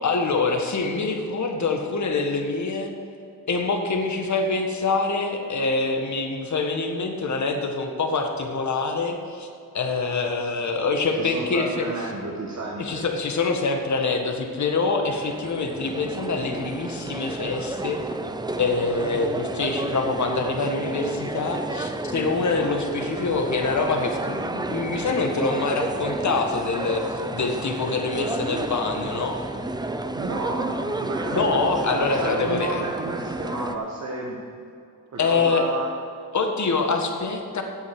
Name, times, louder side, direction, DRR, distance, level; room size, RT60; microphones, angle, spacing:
voice 1, 0.0-2.9 3.5-9.5 9.7-11.8 12.8-18.0 18.6-29.4 31.3-32.8 35.2-35.7 36.3-37.6, left 3 dB, 45° left, 3 dB, 1.7 m, -25 dB
voice 2, 11.2-13.0 30.1-34.4 35.1-35.9, right 3 dB, 40° right, -2 dB, 1.7 m, -31 dB
sound 1, 14.9-33.7, right 2 dB, 10° right, 0.6 m, -31 dB
9.1 x 7.7 x 8.1 m, 2.5 s
cardioid pair, 75°, 40 cm